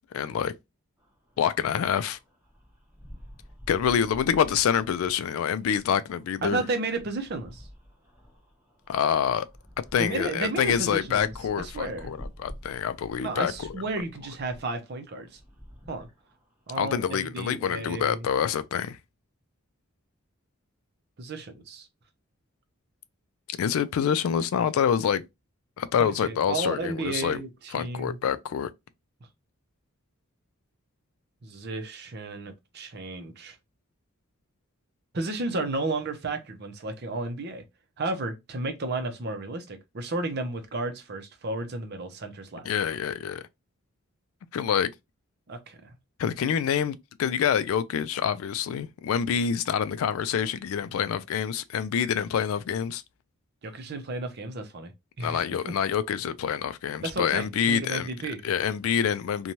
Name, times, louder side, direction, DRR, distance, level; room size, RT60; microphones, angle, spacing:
voice 1, 0.1-0.5 1.4-2.2 3.7-6.6 8.9-9.5 9.8-13.8 16.8-19.0 23.6-25.2 25.8-27.4 27.7-28.7 42.6-43.4 44.5-44.9 46.2-53.0 55.2-58.1 58.4-59.5, left 8 dB, 75° left, 0.3 m, -26 dB
sound 1, 1.0-17.3, equal, 10° right, 0.9 m, -49 dB
voice 2, 6.4-7.7 10.0-11.3 11.6-12.1 13.2-15.4 15.9-16.1 16.7-18.2 21.2-21.9 26.0-28.2 31.4-33.6 35.1-37.6 38.0-42.7 45.5-45.8 53.6-54.9 55.2-55.7 57.0-58.4, right 2 dB, 50° right, 0.6 m, -33 dB
2.7 x 2.2 x 3.0 m
head